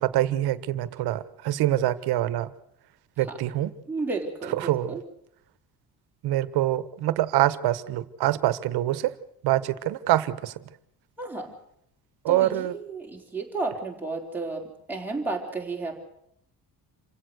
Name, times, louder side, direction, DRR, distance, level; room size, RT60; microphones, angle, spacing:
voice 1, 0.0-2.5 3.2-3.7 4.5-5.0 6.2-9.1 9.4-10.6 12.2-12.7, right 14 dB, 85° right, 14 dB, 1.5 m, -25 dB
voice 2, 3.9-5.0 11.2-11.5 12.3-16.0, right 3 dB, 5° right, -1 dB, 4.0 m, -32 dB
28.0 x 16.5 x 6.6 m, 0.73 s
cardioid pair, 165°, 37 cm